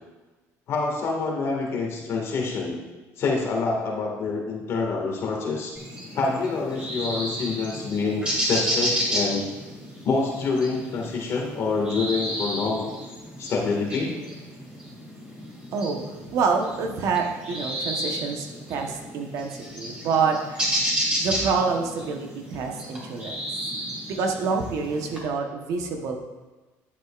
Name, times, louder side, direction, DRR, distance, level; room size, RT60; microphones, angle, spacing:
voice 1, 0.7-2.8 3.2-5.8 6.2-9.5 10.0-12.9 13.4-14.1, left 4 dB, 45° left, 0 dB, 1.9 m, -26 dB
sound 1, 5.8-25.2, equal, 15° right, 2.4 m, -32 dB
voice 2, 15.7-19.5 19.7-20.7 21.2-23.4 24.1-26.2, right 5 dB, 65° right, 3 dB, 1.1 m, -27 dB
11.0 x 7.7 x 2.5 m, 1.2 s
cardioid pair, 135°, 6 cm